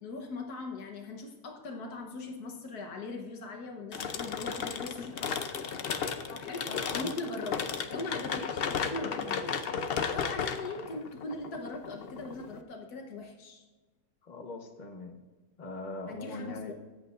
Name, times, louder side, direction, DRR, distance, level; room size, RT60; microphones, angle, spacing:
voice 1, 0.0-5.3 6.3-6.7 6.9-9.7 10.1-13.6 16.1-16.7, left 2 dB, 90° left, 3 dB, 1.7 m, -40 dB
sound 1, 3.9-12.6, left 6 dB, 55° left, 0.7 m, -34 dB
voice 2, 6.7-7.1 14.2-15.2 15.6-16.7, left 2 dB, 30° left, 4 dB, 1.1 m, -41 dB
22.0 x 8.4 x 2.5 m, 1.3 s
omnidirectional pair, 1.6 m